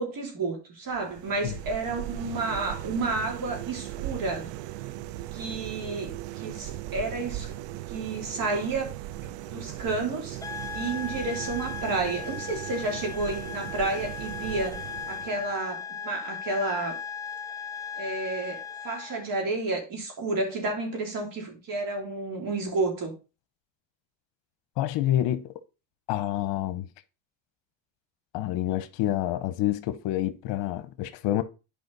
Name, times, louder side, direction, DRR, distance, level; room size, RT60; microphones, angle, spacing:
voice 1, 0.0-4.5 5.3-7.5 7.9-8.9 9.2-10.4 10.7-17.0 18.0-23.1, right 3 dB, 45° right, 3.4 m, -31 dB
sound 1, 0.9-15.6, right 14 dB, 75° right, 0.7 m, -38 dB
sound 2, 10.4-19.3, left 6 dB, 10° left, 0.4 m, -37 dB
voice 2, 24.8-25.5 26.1-26.9 28.3-31.4, left 13 dB, 70° left, 1.0 m, -28 dB
9.6 x 5.1 x 4.0 m
supercardioid pair, 100°, 45 cm